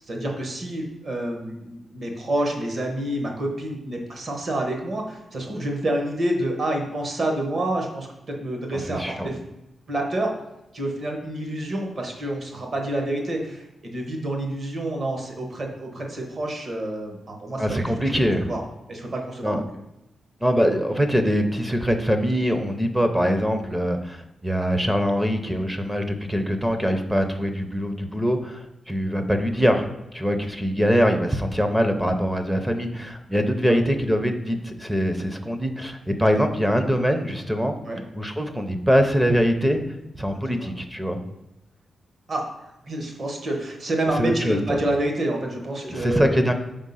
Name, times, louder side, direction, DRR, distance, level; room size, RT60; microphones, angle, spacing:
voice 1, 0.1-9.4 9.9-10.3 10.7-17.9 18.4-18.6 18.9-19.6 37.9-38.0 40.6-40.7 42.3-42.4 42.8-46.4, right 1 dB, 45° right, 2 dB, 1.1 m, -28 dB
voice 2, 8.7-9.3 17.6-18.5 19.4-19.6 20.4-37.8 38.1-39.8 40.2-41.2 44.2-44.8 45.8-46.5, equal, 5° right, 6 dB, 0.5 m, -23 dB
4.8 x 3.6 x 5.5 m, 0.95 s
wide cardioid pair, 135°, 0 cm